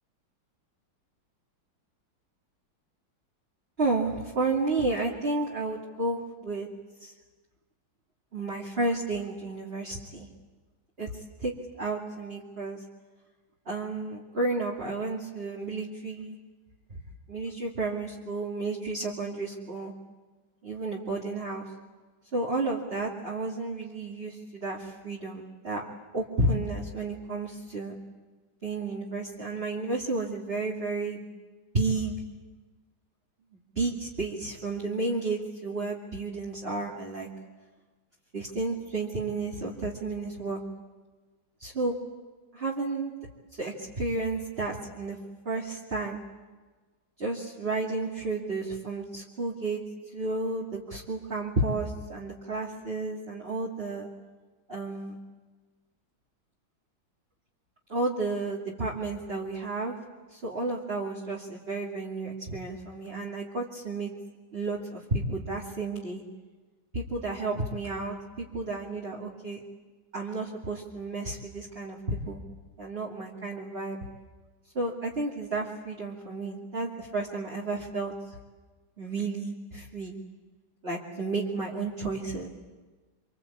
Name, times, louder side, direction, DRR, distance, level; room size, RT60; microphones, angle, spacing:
voice 1, 3.8-6.7 7.0-7.1 8.3-10.3 11.0-11.1 11.4-12.8 13.7-16.4 17.3-19.9 20.6-21.7 22.3-25.8 26.1-28.0 28.6-31.3 31.7-32.2 33.8-37.3 38.3-40.6 41.6-42.0 42.5-43.1 43.6-45.2 45.4-46.2 47.2-49.8 50.1-54.1 54.7-55.2 57.9-60.0 60.3-64.1 64.5-66.2 66.9-69.6 70.1-72.4 72.8-74.0 74.7-78.1 79.0-80.2 80.8-82.5, right 2 dB, 30° right, -3 dB, 2.7 m, -32 dB
26.5 x 26.0 x 8.7 m, 1.3 s
omnidirectional pair, 2.2 m